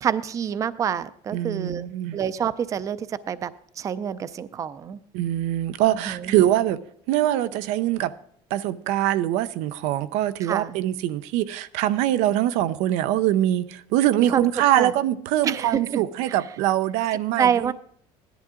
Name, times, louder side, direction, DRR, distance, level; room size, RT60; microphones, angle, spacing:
voice 1, 0.0-3.5 3.8-5.0 6.1-6.4 10.4-10.8 14.3-14.5 14.7-14.9 15.4-16.0 17.4-17.7, right 8 dB, 30° right, 16 dB, 0.4 m, -27 dB
voice 2, 1.3-2.2 5.1-6.8 7.1-8.1 8.5-17.7, right 13 dB, 90° right, 13 dB, 0.6 m, -23 dB
15.5 x 11.0 x 3.7 m, 0.64 s
cardioid pair, 150°, 12 cm